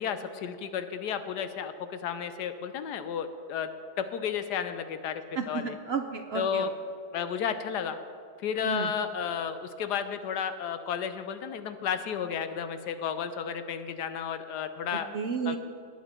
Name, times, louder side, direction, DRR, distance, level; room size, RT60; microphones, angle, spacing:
voice 1, 0.0-3.7 4.0-5.8 6.3-6.7 7.1-8.0 8.4-15.1 15.4-15.6, left 7 dB, 75° left, 10 dB, 1.2 m, -32 dB
voice 2, 5.4-6.7 8.6-8.9 15.1-15.6, right 5 dB, 75° right, 6 dB, 0.5 m, -32 dB
18.5 x 8.9 x 4.4 m, 2.4 s
omnidirectional pair, 1.9 m